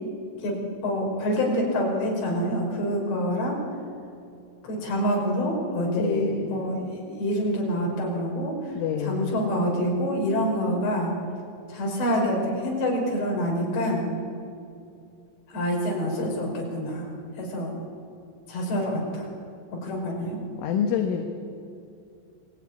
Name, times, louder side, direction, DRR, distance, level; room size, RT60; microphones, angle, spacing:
voice 1, 0.8-3.6 4.6-8.5 9.1-11.1 11.7-14.1 15.5-17.1 17.4-17.7 18.5-19.2 19.7-20.4, equal, 60° left, -1 dB, 7.6 m, -26 dB
voice 2, 5.9-6.6 8.8-9.4 20.6-21.2, left 8 dB, 75° left, 3 dB, 4.0 m, -27 dB
28.5 x 21.5 x 9.7 m, 2.5 s
omnidirectional pair, 5.8 m